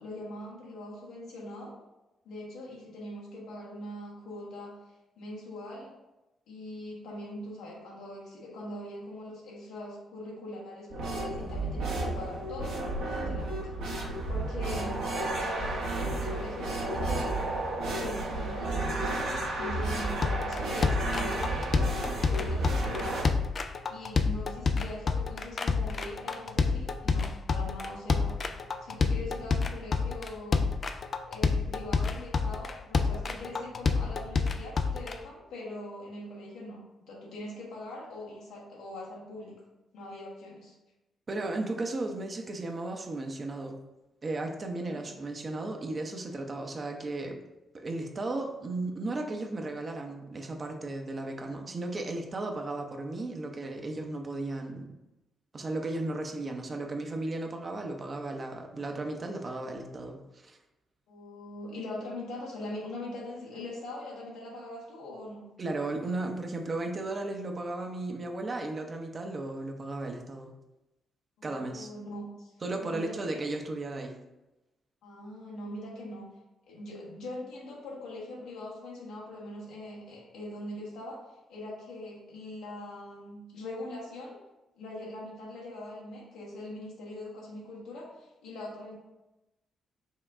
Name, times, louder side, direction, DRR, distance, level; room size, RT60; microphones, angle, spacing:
voice 1, 0.0-1.7 2.2-4.7 5.2-5.9 6.5-13.7 14.3-15.0 15.4-17.3 17.8-23.3 23.9-28.4 28.8-30.7 31.2-39.6 39.9-40.7 44.9-45.0 61.1-65.5 71.4-72.5 72.8-73.4 75.0-76.3 76.7-81.2 81.5-84.4 84.7-89.0, left 1 dB, 65° left, -4 dB, 1.3 m, -42 dB
sound 1, 10.9-23.2, right 2 dB, 70° right, 0.9 m, -32 dB
sound 2, 20.2-35.1, left 4 dB, 45° left, 0.3 m, -28 dB
voice 2, 41.3-43.8 44.2-47.4 47.7-54.9 55.5-60.6 65.6-70.5 71.4-71.9 72.6-74.2, right 2 dB, 40° right, 3 dB, 0.6 m, -35 dB
5.5 x 2.3 x 3.5 m, 1.0 s
figure-of-eight pair, 40°, 0 cm